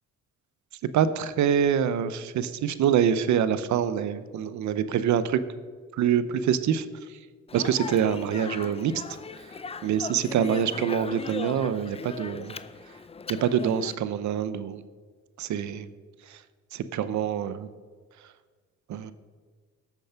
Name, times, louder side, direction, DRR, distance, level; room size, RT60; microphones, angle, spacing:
voice 1, 0.9-5.4 5.9-7.2 7.5-9.0 9.5-12.6 13.3-14.8 15.4-15.9 16.3-16.4 16.7-17.7 18.9-19.1, right 8 dB, 70° right, 14 dB, 0.7 m, -26 dB
Speech, 7.5-14.0, left 5 dB, 20° left, 0.4 m, -38 dB
13.0 x 7.1 x 5.7 m, 1.5 s
cardioid pair, 90°, 30 cm